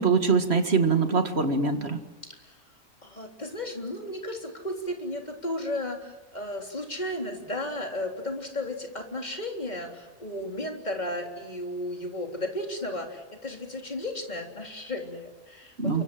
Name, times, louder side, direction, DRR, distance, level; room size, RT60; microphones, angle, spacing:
voice 1, 0.0-2.0 15.8-16.0, right 4 dB, 50° right, 7 dB, 2.2 m, -23 dB
voice 2, 3.0-16.0, left 1 dB, 30° left, 2 dB, 3.7 m, -34 dB
29.0 x 24.5 x 7.7 m, 1.2 s
omnidirectional pair, 1.4 m